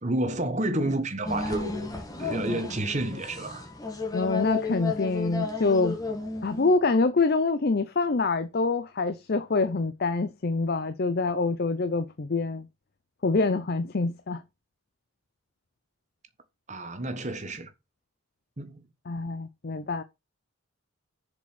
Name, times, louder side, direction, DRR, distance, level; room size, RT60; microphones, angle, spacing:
voice 1, 0.0-1.9 2.2-3.7 16.7-17.7 18.6-18.9, right 1 dB, 35° right, 1.3 m, -30 dB
sound 1, 1.2-6.7, left 4 dB, 15° left, 1.7 m, -33 dB
voice 2, 4.1-6.0 6.4-12.7 13.2-14.4 19.1-20.0, left 3 dB, 45° left, 0.5 m, -26 dB
7.0 x 5.1 x 5.8 m
head